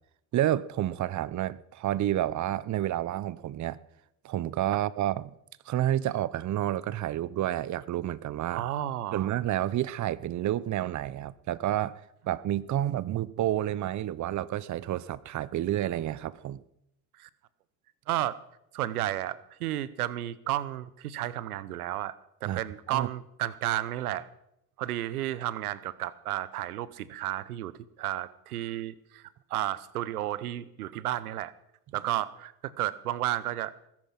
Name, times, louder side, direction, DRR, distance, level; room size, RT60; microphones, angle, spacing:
voice 1, 0.3-3.8 4.2-5.3 5.7-8.6 9.1-16.6 22.5-22.6 22.9-23.1, right 12 dB, 40° right, 0.9 m, -30 dB
voice 2, 8.5-9.3 17.2-17.3 18.1-18.4 18.7-22.1 22.4-24.3 24.8-29.2 29.5-31.5 31.9-33.7, right 13 dB, 90° right, 0.9 m, -32 dB
20.0 x 10.5 x 5.8 m
hypercardioid pair, 70°, 43 cm